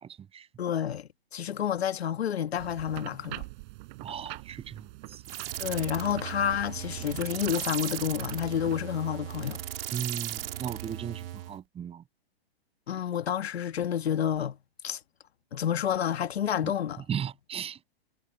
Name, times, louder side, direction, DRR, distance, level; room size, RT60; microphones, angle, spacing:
voice 1, 0.0-0.5 4.0-5.2 9.9-12.0 17.1-17.8, right 8 dB, 20° right, 7.9 m, -36 dB
voice 2, 0.6-3.5 5.6-9.6 12.9-14.6 14.8-15.0 15.5-17.0, left 9 dB, 80° left, 1.6 m, -29 dB
sound 1, 2.6-8.8, right 26 dB, 45° right, 5.1 m, -44 dB
sound 2, 5.2-11.6, right 13 dB, 65° right, 2.2 m, -37 dB
hypercardioid pair, 135°, 31 cm